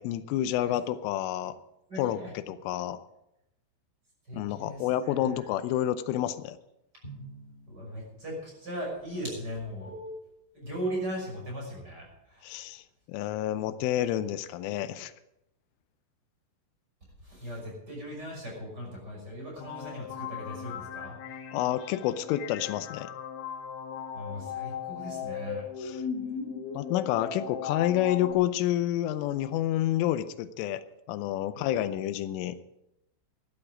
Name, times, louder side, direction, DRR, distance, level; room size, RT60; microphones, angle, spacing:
voice 1, 0.0-1.5 2.0-2.2 2.5-3.0 4.3-6.6 12.4-12.8 13.1-15.1 21.5-23.1 25.8-26.0 26.7-32.6, left 12 dB, 85° left, 12 dB, 3.2 m, -29 dB
voice 2, 1.9-2.3 4.2-5.5 7.7-12.6 17.2-21.2 24.1-25.6 31.5-31.7, equal, 20° right, -2 dB, 6.0 m, -38 dB
Drum, 7.0-8.8, right 3 dB, 20° left, 1.9 m, -48 dB
sound 1, 19.6-28.3, left 8 dB, 70° left, 2.5 m, -37 dB
15.0 x 12.0 x 4.9 m, 0.85 s
omnidirectional pair, 5.6 m